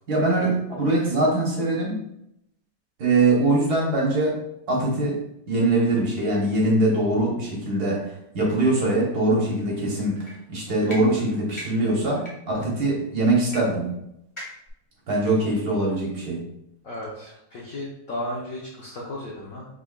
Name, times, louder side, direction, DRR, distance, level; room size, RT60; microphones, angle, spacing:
voice 1, 0.1-2.0 3.0-4.4 4.7-5.2 5.5-13.9 15.1-16.4, right 2 dB, 55° right, -3 dB, 1.4 m, -22 dB
sound 1, 10.2-10.3 10.8-11.0 11.5-11.7 12.2-12.3 13.5-13.6 13.9-14.0 14.4-14.7, left 1 dB, 20° left, 0.8 m, -37 dB
voice 2, 16.8-19.7, left 1 dB, 65° left, -4 dB, 0.9 m, -34 dB
5.0 x 3.5 x 2.3 m, 0.80 s
omnidirectional pair, 2.2 m